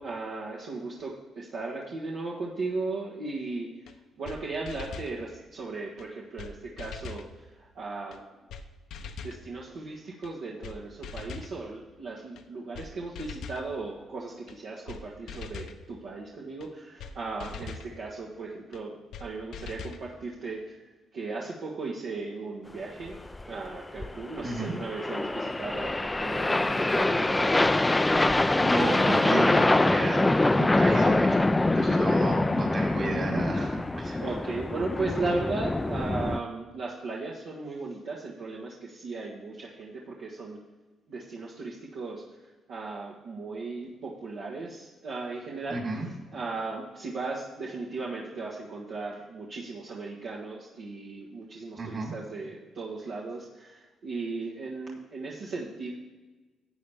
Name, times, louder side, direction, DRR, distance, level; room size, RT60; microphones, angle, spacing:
voice 1, 0.0-3.7 4.2-8.4 9.2-18.9 19.2-20.7 21.1-23.2 23.5-27.8 34.2-40.6 41.1-42.2 42.7-45.8 46.3-55.9, right 3 dB, 70° right, -5 dB, 1.5 m, -36 dB
sound 1, 3.9-4.0 4.2-4.4 4.7-5.1 6.0-6.1 6.4-6.5 6.8-7.3 8.1-8.2 8.5-8.6 8.9-9.4 10.2-10.3 10.6-10.8 11.0-11.5 12.4-12.5 12.7-12.9 13.1-13.6 14.5-14.6 14.9-15.0 15.3-15.8 16.6-16.7 17.0-17.1 17.4-17.9 18.7-18.8 19.1-19.3 19.5-20.0, left 5 dB, 80° left, 0.8 m, -41 dB
sound 2, 23.1-36.4, left 2 dB, 15° left, 0.4 m, -25 dB
voice 2, 24.4-24.7 28.6-34.3 45.7-46.1 51.8-52.1, right 2 dB, 45° right, 0 dB, 3.6 m, -32 dB
12.5 x 8.5 x 3.5 m, 1.3 s
cardioid pair, 90°, 0 cm